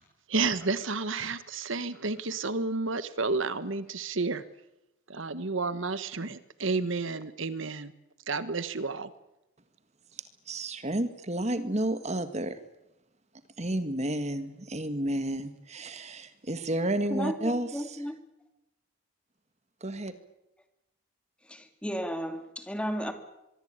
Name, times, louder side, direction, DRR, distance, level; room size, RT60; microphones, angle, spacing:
voice 1, 0.3-4.4 5.1-7.9 8.3-9.1, right 3 dB, 65° right, 1.3 m, -31 dB
voice 2, 10.1-12.6 13.6-18.0 19.8-20.1, right 1 dB, 30° right, 1.6 m, -31 dB
voice 3, 17.1-18.2 21.4-23.1, equal, 5° left, 2.4 m, -34 dB
24.5 x 23.0 x 8.9 m
head